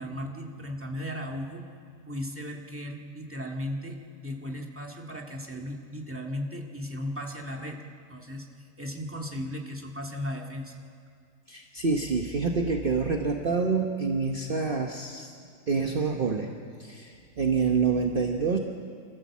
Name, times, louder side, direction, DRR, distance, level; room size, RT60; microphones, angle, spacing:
voice 1, 0.0-1.7 2.1-7.8 8.1-8.5 8.8-10.7, left 1 dB, 10° right, 0 dB, 1.9 m, -36 dB
voice 2, 11.5-15.3 15.7-16.5 16.8-18.6, right 4 dB, 40° right, 2 dB, 1.2 m, -27 dB
27.0 x 14.5 x 7.3 m, 2.2 s
omnidirectional pair, 1.5 m